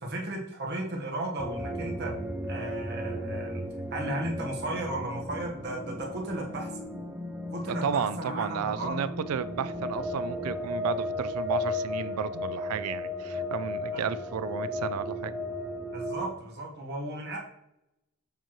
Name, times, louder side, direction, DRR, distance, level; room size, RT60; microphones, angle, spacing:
voice 1, 0.0-2.1 2.5-3.6 3.9-6.7 7.5-9.1 13.9-14.0 15.9-17.4, right 1 dB, 45° right, 1.2 m, -35 dB
sound 1, 1.4-16.3, left 1 dB, 5° right, 0.5 m, -35 dB
voice 2, 7.6-15.4, right 7 dB, 85° right, 0.4 m, -33 dB
6.9 x 4.5 x 3.0 m
head